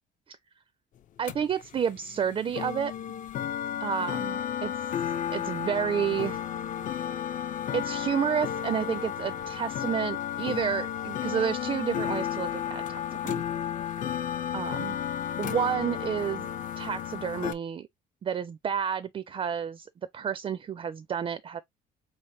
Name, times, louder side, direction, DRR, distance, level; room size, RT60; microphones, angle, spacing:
voice 1, 1.2-2.9 3.8-4.9 5.3-6.4 7.7-13.4 14.5-15.0 15.4-16.5 16.8-17.9 18.2-19.9 20.1-21.6, right 8 dB, 30° right, 0.4 m, -30 dB
sound 1, 1.3-17.5, left 9 dB, 50° left, 0.5 m, -33 dB
4.2 x 3.3 x 2.6 m
cardioid pair, 110°, 17 cm